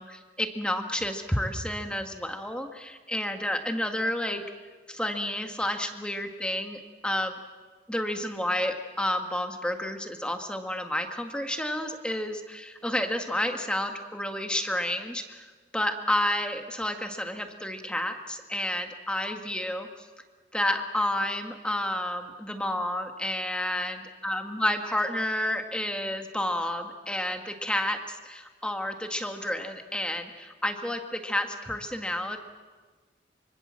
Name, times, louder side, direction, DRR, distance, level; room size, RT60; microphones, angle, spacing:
voice 1, 0.0-4.4 4.9-7.4 7.9-15.5 15.7-20.1 20.5-32.4, left 1 dB, 5° left, 5 dB, 1.7 m, -30 dB
25.0 x 25.0 x 7.5 m, 1.4 s
head